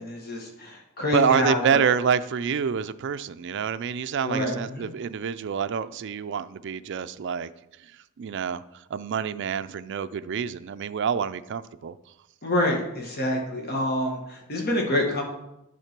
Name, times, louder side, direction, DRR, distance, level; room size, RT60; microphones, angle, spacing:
voice 1, 0.0-1.8 4.2-4.9 12.4-15.2, left 1 dB, 50° left, 0 dB, 1.5 m, -27 dB
voice 2, 1.1-7.5 7.8-7.9 8.2-8.6 8.9-12.0, right 7 dB, 55° right, 12 dB, 0.4 m, -27 dB
11.0 x 3.7 x 5.9 m, 0.89 s
head